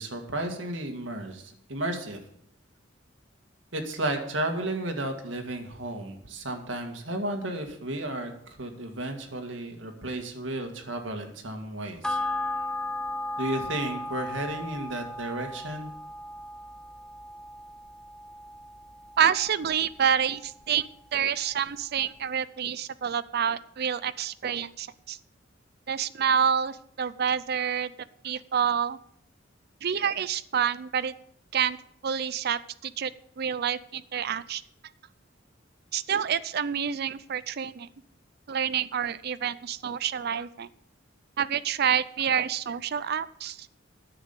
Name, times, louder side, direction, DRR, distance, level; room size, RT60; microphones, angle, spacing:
voice 1, 0.0-2.2 3.7-8.3 8.6-12.2 13.4-15.9, right 1 dB, 80° right, 4 dB, 2.0 m, -33 dB
sound 1, 12.0-20.8 21.1-21.2, left 2 dB, 5° left, 0.5 m, -36 dB
voice 2, 19.2-20.9 21.1-25.2 25.9-27.9 28.2-29.0 29.8-31.1 31.5-31.8 32.0-33.1 33.4-34.6 35.9-37.9 38.5-40.7 41.4-43.7, right 8 dB, 55° right, 14 dB, 0.5 m, -28 dB
9.8 x 7.3 x 8.1 m, 0.68 s
head